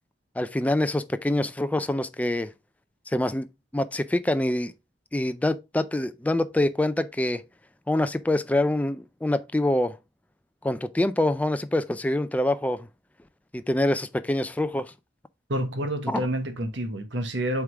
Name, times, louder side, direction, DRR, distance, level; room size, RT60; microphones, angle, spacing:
voice 1, 0.4-2.5 3.1-3.5 3.7-4.7 5.1-7.4 7.9-10.0 10.6-12.9 13.5-14.9 16.1-16.2, left 1 dB, 10° left, 0.3 m, -25 dB
voice 2, 15.5-17.6, right 1 dB, 85° right, 1.3 m, -28 dB
7.8 x 3.7 x 3.5 m
head